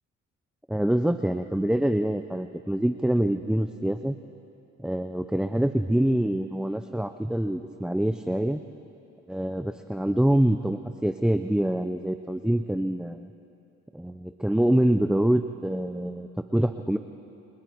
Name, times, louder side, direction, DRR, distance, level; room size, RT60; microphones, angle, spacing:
voice 1, 0.7-4.2 4.8-8.6 9.3-13.3 13.9-17.0, right 1 dB, 5° right, 8 dB, 0.6 m, -25 dB
30.0 x 28.0 x 4.6 m, 2.7 s
cardioid pair, 90°, 30 cm